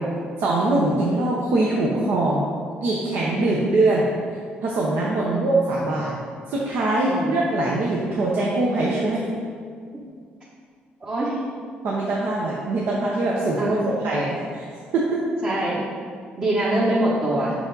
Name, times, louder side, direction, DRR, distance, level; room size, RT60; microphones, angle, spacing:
voice 1, 0.4-2.5 2.8-4.1 4.6-6.2 6.5-9.2 11.8-14.7 14.9-15.2, right 2 dB, 75° right, -4 dB, 0.8 m, -22 dB
voice 2, 11.0-11.4 13.6-13.9 15.4-15.8 16.4-17.5, right 1 dB, 40° right, -6 dB, 1.1 m, -24 dB
5.5 x 4.9 x 3.9 m, 2.1 s
cardioid pair, 75°, 4 cm